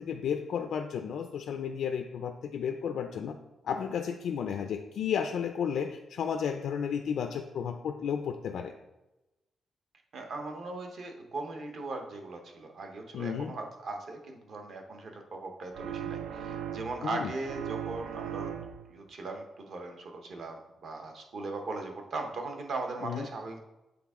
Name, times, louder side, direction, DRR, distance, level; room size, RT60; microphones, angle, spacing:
voice 1, 0.0-3.4 3.6-8.7 13.1-13.5 17.0-17.3 23.0-23.2, left 7 dB, 65° left, 5 dB, 0.3 m, -33 dB
voice 2, 10.1-18.5 18.9-23.6, right 3 dB, 50° right, 3 dB, 0.9 m, -39 dB
sound 1, 15.7-17.1 17.4-19.0, right 9 dB, 80° right, 0.4 m, -38 dB
7.7 x 3.5 x 3.6 m, 0.99 s
wide cardioid pair, 180°, 0 cm